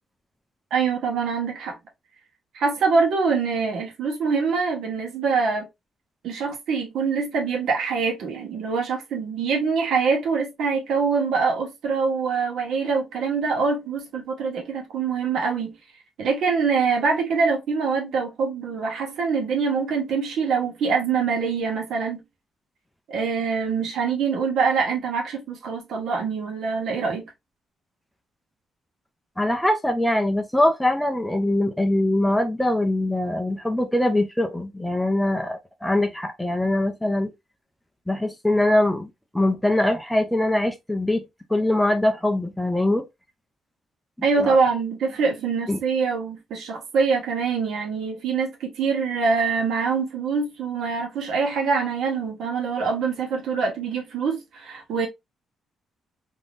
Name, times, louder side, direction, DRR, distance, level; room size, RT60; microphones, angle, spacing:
voice 1, 0.7-1.8 2.5-5.7 6.2-15.7 16.2-22.2 23.1-27.3 44.2-55.1, right 5 dB, 65° right, 0.9 m, -24 dB
voice 2, 29.4-37.3 38.1-39.1 39.3-41.2 41.5-43.0 44.4-44.6 45.7-45.8, left 1 dB, 5° left, 0.4 m, -22 dB
3.5 x 2.6 x 2.4 m
cardioid pair, 165°, 0 cm